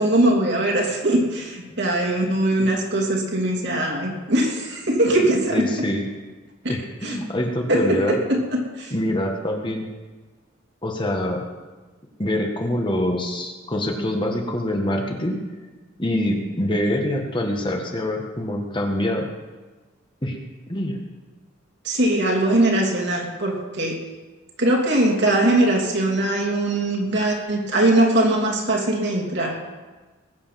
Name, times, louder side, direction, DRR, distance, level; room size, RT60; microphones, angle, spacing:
voice 1, 0.0-5.7 6.6-6.7 7.0-7.2 7.7-8.9 21.8-24.0 24.6-29.6, right 1 dB, 60° right, -1 dB, 3.0 m, -21 dB
voice 2, 5.2-6.0 6.7-8.2 8.9-9.8 10.8-11.5 12.2-15.4 16.0-19.3 20.2-20.4 20.7-21.0, left 1 dB, 25° left, 2 dB, 1.7 m, -25 dB
20.5 x 8.5 x 5.9 m, 1.3 s
head